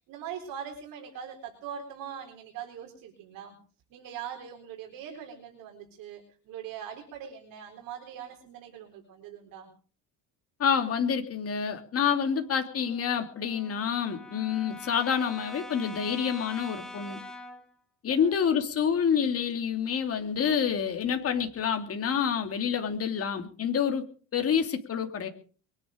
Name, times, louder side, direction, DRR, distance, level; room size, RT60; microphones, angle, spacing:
voice 1, 0.1-3.6 3.9-6.2 6.5-9.7 18.2-18.5, right 8 dB, 65° right, 1 dB, 4.2 m, -42 dB
voice 2, 10.6-17.2 18.0-24.0 24.3-25.3, left 7 dB, 40° left, 6 dB, 2.9 m, -28 dB
Brass instrument, 12.2-17.7, left 1 dB, ahead, 3.1 m, -44 dB
22.5 x 10.5 x 5.2 m, 0.42 s
cardioid pair, 125°, 36 cm